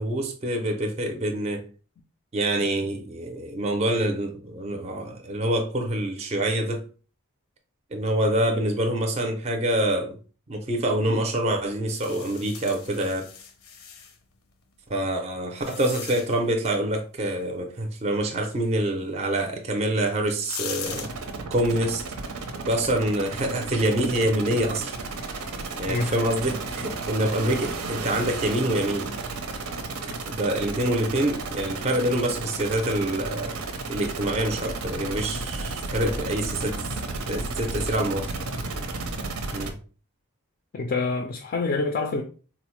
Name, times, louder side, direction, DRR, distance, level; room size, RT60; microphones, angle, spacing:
voice 1, 0.0-1.6 2.3-6.8 7.9-10.2 10.5-13.3 14.9-21.1 21.5-22.0 22.7-24.9 25.8-29.1 30.3-33.6 33.9-36.9 37.3-38.3 39.5-39.8, right 1 dB, 30° right, 0.4 m, -26 dB
sound 1, 11.9-14.2 14.9-16.5 19.5-19.6 20.1-21.1, left 7 dB, 85° left, 0.6 m, -39 dB
sound 2, 20.8-39.7, right 3 dB, 85° right, 0.6 m, -33 dB
voice 2, 25.9-26.2 30.1-30.2 40.7-42.2, left 3 dB, 40° left, 0.3 m, -27 dB
3.8 x 2.0 x 3.0 m
head